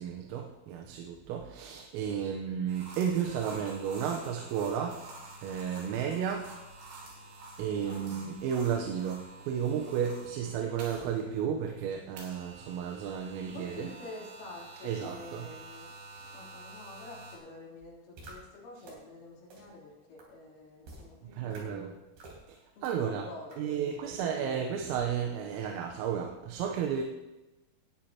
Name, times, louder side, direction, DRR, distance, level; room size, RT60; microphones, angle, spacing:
voice 1, 0.0-5.0 5.4-6.6 7.6-13.9 14.8-15.5 21.3-22.0 22.5-23.3 23.6-27.0, right 8 dB, 85° right, 2 dB, 3.7 m, -33 dB
sound 1, 2.7-11.2 12.2-17.4, right 2 dB, 70° right, 5.1 m, -49 dB
voice 2, 7.7-8.1 13.5-15.9 16.3-21.9 22.7-24.5, left 3 dB, 70° left, -4 dB, 6.0 m, -48 dB
sound 2, 18.2-18.3 18.8-18.9 19.5-19.6 20.2-20.3 20.8-21.0 21.5-21.6 22.2-22.4 22.8-22.9 23.5-23.6, right 2 dB, 55° right, 5.0 m, -47 dB
19.5 x 11.0 x 2.9 m, 1.1 s
omnidirectional pair, 5.9 m